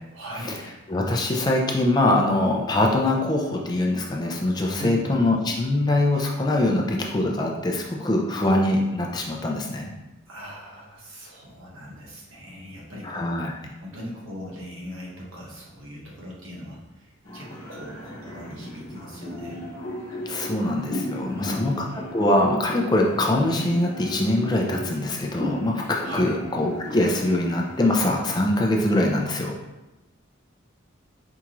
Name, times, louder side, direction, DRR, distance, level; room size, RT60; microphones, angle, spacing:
voice 1, 0.1-0.6 4.8-5.3 10.3-13.4 13.8-19.6 21.2-22.0 26.0-26.4, equal, 85° right, -4 dB, 1.1 m, -38 dB
voice 2, 0.9-9.9 13.0-13.5 20.1-21.7 22.1-29.5, left 1 dB, 20° left, 0 dB, 0.4 m, -23 dB
sound 1, 17.3-27.9, equal, 65° left, 0.9 m, -35 dB
4.5 x 2.5 x 2.9 m, 1.0 s
head